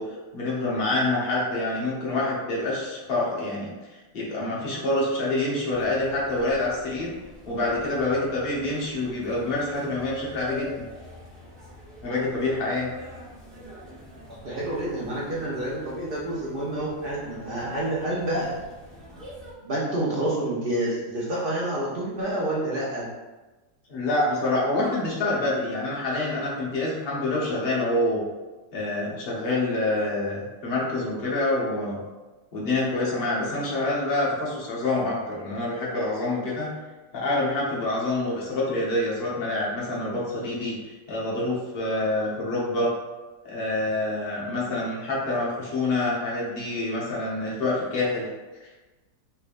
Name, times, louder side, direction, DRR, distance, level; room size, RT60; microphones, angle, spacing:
voice 1, 0.0-3.7 4.1-7.1 7.5-10.8 12.0-12.9 23.9-28.2 28.7-32.0 32.5-36.7 37.1-40.8 41.1-42.9 43.4-48.3 48.6-48.7, left 2 dB, 40° left, -6 dB, 0.9 m, -26 dB
sound 1, 5.7-19.5, left 1 dB, ahead, 0.6 m, -45 dB
voice 2, 14.3-18.5 19.6-23.1, right 1 dB, 60° right, -6 dB, 0.5 m, -28 dB
3.3 x 3.1 x 2.5 m, 1.2 s
omnidirectional pair, 1.8 m